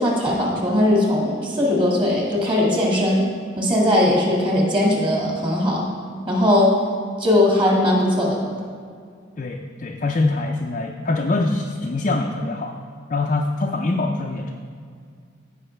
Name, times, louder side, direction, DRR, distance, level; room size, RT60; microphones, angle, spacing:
voice 1, 0.0-3.3 3.6-5.8 6.3-6.7 7.2-8.4, left 1 dB, 25° right, -3 dB, 1.9 m, -19 dB
voice 2, 9.4-12.8 13.1-14.5, left 2 dB, 40° left, 1 dB, 0.5 m, -24 dB
16.0 x 5.5 x 3.3 m, 2.1 s
head